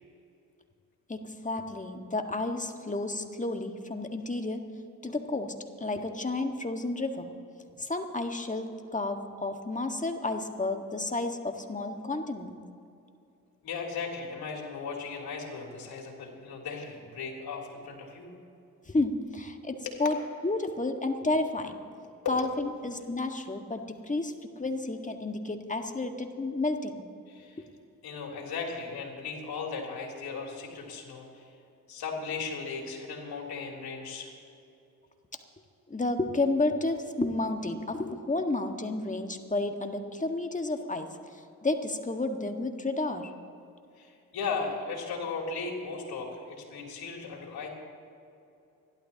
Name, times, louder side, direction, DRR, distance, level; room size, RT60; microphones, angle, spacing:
voice 1, 1.1-4.6 5.0-7.3 7.8-12.5 18.9-20.2 20.4-21.7 22.3-24.3 24.6-27.0 35.9-41.1 41.6-43.3, left 2 dB, 20° left, 5 dB, 1.7 m, -31 dB
voice 2, 13.6-18.3 19.9-20.0 22.2-22.4 27.3-27.6 28.0-31.5 31.9-34.3 44.0-47.7, left 5 dB, 60° left, 0 dB, 3.5 m, -36 dB
29.0 x 12.0 x 3.0 m, 2.6 s
hypercardioid pair, 45°, 42 cm